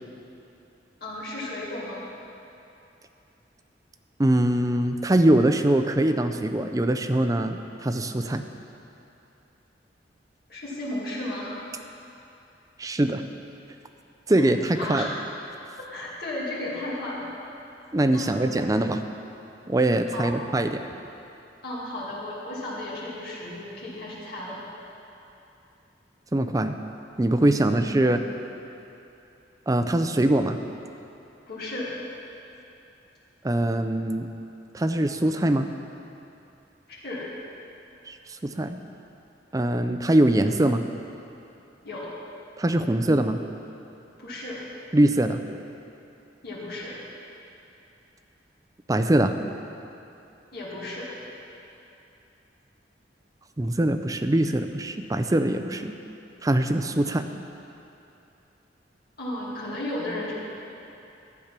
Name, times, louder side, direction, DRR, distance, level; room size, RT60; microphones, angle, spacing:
voice 1, 1.0-2.1 10.5-11.6 14.3-14.4 14.8-15.1 15.8-17.3 18.1-18.4 20.1-20.3 21.6-24.6 27.9-28.1 31.5-32.0 37.0-37.3 41.8-42.2 44.2-44.6 46.4-47.0 50.5-51.2 59.2-60.4, left 1 dB, 60° left, -8 dB, 2.3 m, -34 dB
voice 2, 4.2-8.4 12.8-13.2 14.3-15.1 17.9-19.0 19.7-20.8 26.3-26.8 27.2-28.2 29.7-30.6 33.4-34.3 34.7-35.7 38.1-38.2 38.4-38.8 39.5-40.8 42.6-43.4 44.9-45.4 48.9-49.3 53.6-56.0 56.4-57.3, right 1 dB, 20° right, 7 dB, 0.5 m, -22 dB
12.0 x 8.1 x 5.9 m, 2.8 s
head